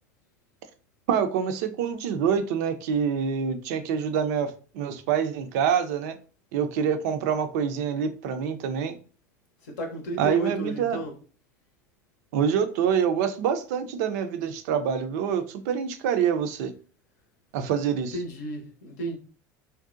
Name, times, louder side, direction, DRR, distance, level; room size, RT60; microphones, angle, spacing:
voice 1, 1.1-6.2 6.5-9.0 10.2-11.0 12.3-16.7 17.5-18.1, right 7 dB, 65° right, 9 dB, 0.4 m, -26 dB
voice 2, 9.6-11.1 18.0-19.2, right 3 dB, 75° left, 3 dB, 0.6 m, -32 dB
2.6 x 2.1 x 2.4 m, 0.38 s
hypercardioid pair, 80°, 9 cm